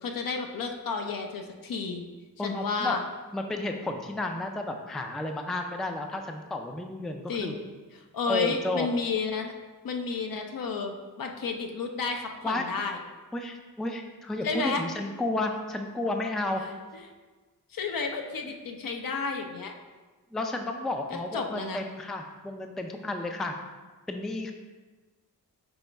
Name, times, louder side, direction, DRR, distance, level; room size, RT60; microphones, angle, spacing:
voice 1, 0.0-2.0 2.4-3.0 7.3-7.6 8.1-9.5 9.8-13.0 14.4-14.8 17.7-19.7 21.3-21.8, left 4 dB, 60° left, 3 dB, 0.7 m, -31 dB
voice 2, 2.4-3.0 3.3-7.6 8.3-8.9 12.4-12.9 13.3-16.6 20.3-23.6 24.1-24.5, left 2 dB, ahead, 4 dB, 0.4 m, -32 dB
5.4 x 2.9 x 3.3 m, 1.3 s
cardioid pair, 50°, 39 cm